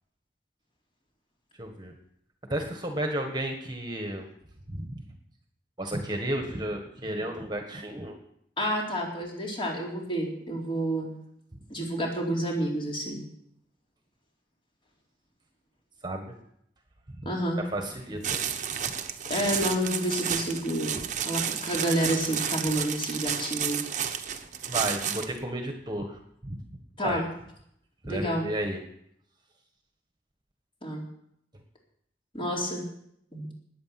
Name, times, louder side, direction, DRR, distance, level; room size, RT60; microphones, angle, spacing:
voice 1, 1.6-1.9 2.5-4.3 4.7-5.0 5.8-8.2 16.0-16.3 17.6-18.4 18.8-18.9 24.7-26.6 27.0-27.2 28.0-28.8, right 1 dB, 25° right, 4 dB, 1.6 m, -32 dB
voice 2, 8.6-11.1 11.7-13.2 17.3-17.6 19.3-21.0 21.2-23.8 27.0-27.3 28.1-28.5 30.8-31.0 32.3-32.8 33.3-33.5, equal, 30° left, -2 dB, 4.2 m, -29 dB
sound 1, 18.2-25.4, right 8 dB, 45° right, 1.1 m, -31 dB
20.0 x 8.7 x 6.0 m, 0.72 s
head